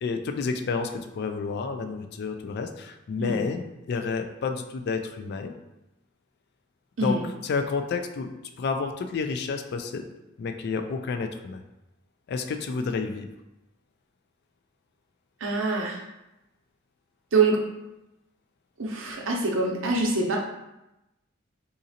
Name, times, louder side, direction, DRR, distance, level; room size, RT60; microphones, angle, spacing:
voice 1, 0.0-5.5 7.0-7.2 7.4-8.3 8.6-10.0 10.4-11.6 12.3-13.3, left 4 dB, 55° left, 6 dB, 0.3 m, -30 dB
voice 2, 15.4-16.0 17.3-17.6 18.8-20.4, right 3 dB, 70° right, 0 dB, 0.6 m, -24 dB
3.9 x 2.5 x 2.7 m, 0.94 s
head